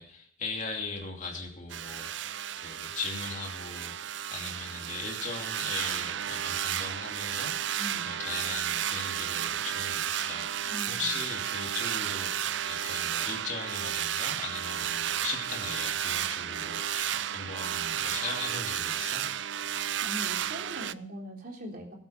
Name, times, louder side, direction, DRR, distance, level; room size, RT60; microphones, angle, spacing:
voice 1, 0.0-19.3, left 3 dB, 40° left, 1 dB, 2.9 m, -39 dB
sound 1, 1.7-20.9, right 10 dB, 65° right, 0.5 m, -33 dB
voice 2, 7.8-8.2 10.7-11.1 20.0-21.9, equal, 45° right, 0 dB, 3.5 m, -41 dB
19.5 x 8.4 x 5.8 m, 0.67 s
head